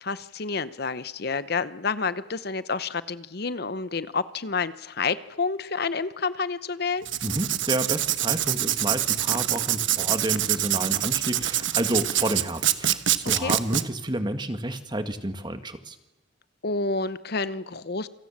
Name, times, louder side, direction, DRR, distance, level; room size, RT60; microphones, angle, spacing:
voice 1, 0.0-7.1 13.3-13.5 16.6-18.1, left 4 dB, 55° left, 14 dB, 0.9 m, -29 dB
Writing, 7.0-13.8, right 12 dB, 75° right, 1.2 m, -25 dB
voice 2, 7.2-16.0, right 1 dB, 25° right, 8 dB, 1.8 m, -30 dB
28.5 x 25.0 x 7.4 m, 0.95 s
head